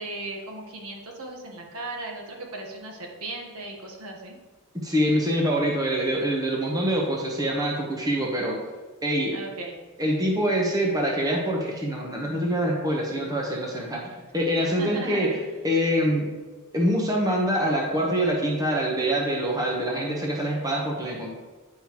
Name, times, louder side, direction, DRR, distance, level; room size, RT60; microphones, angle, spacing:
voice 1, 0.0-4.4 8.1-8.2 9.3-9.7 14.6-15.4, right 2 dB, 75° right, 1 dB, 1.2 m, -37 dB
voice 2, 4.7-8.6 9.0-9.3 10.0-14.1 14.3-15.3 15.6-16.3 16.7-21.3, equal, 15° right, -1 dB, 1.0 m, -25 dB
9.0 x 5.5 x 3.0 m, 1.3 s
head